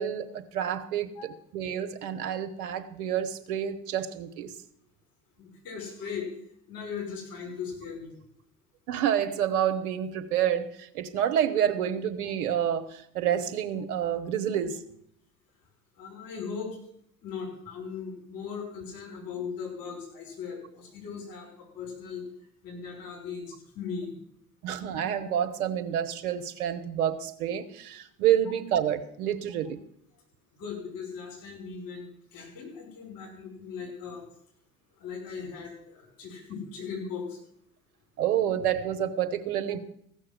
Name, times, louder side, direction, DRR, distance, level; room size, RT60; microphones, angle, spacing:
voice 1, 0.0-4.5 8.9-14.8 24.6-29.8 38.2-39.8, right 9 dB, 65° right, 8 dB, 1.2 m, -28 dB
voice 2, 5.4-6.3 6.7-8.2 16.0-16.8 17.2-22.3 22.6-24.2 30.6-34.2 35.0-37.4, left 6 dB, 45° left, 1 dB, 5.7 m, -38 dB
15.5 x 6.5 x 7.5 m, 0.69 s
figure-of-eight pair, 65°, 46 cm